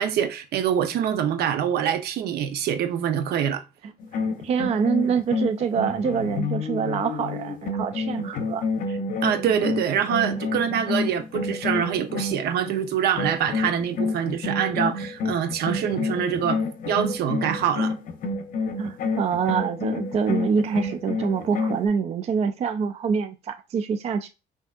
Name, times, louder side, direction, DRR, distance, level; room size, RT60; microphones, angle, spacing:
voice 1, 0.0-3.6 9.2-16.6 16.9-17.9, right 8 dB, 70° right, 0.7 m, -25 dB
sound 1, 4.0-12.8 13.2-21.9, left 3 dB, 55° left, 0.7 m, -29 dB
voice 2, 4.1-8.6 18.8-24.3, right 6 dB, 40° right, 0.4 m, -25 dB
5.9 x 2.7 x 2.4 m
cardioid pair, 110°, 17 cm